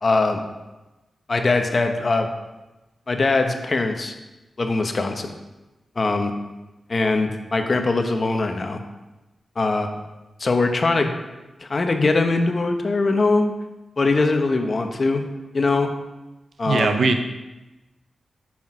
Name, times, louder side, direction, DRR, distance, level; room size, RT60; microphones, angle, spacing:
voice 1, 0.0-0.5 1.3-2.3 3.1-4.1 4.6-5.3 6.0-6.3 6.9-8.8 9.6-9.9 10.4-11.1 11.6-13.5 14.0-15.2 15.5-15.9 16.6-17.0, left 3 dB, 45° left, 5 dB, 1.0 m, -21 dB
voice 2, 16.7-17.2, right 3 dB, 70° right, 7 dB, 0.7 m, -20 dB
8.6 x 6.0 x 4.9 m, 1.1 s
wide cardioid pair, 95°, 0 cm